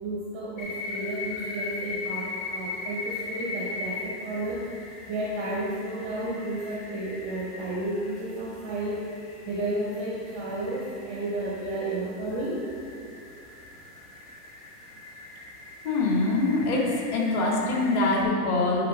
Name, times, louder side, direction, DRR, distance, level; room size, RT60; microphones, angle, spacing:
voice 1, 0.0-4.6 5.1-9.1 9.5-12.6, right 1 dB, 10° right, -4 dB, 0.5 m, -32 dB
sound 1, 0.6-18.2, left 3 dB, 25° left, 1.3 m, -40 dB
voice 2, 15.8-16.9 17.1-18.9, left 2 dB, 45° left, -2 dB, 2.0 m, -24 dB
10.0 x 3.8 x 5.9 m, 2.4 s
supercardioid pair, 165°, 49 cm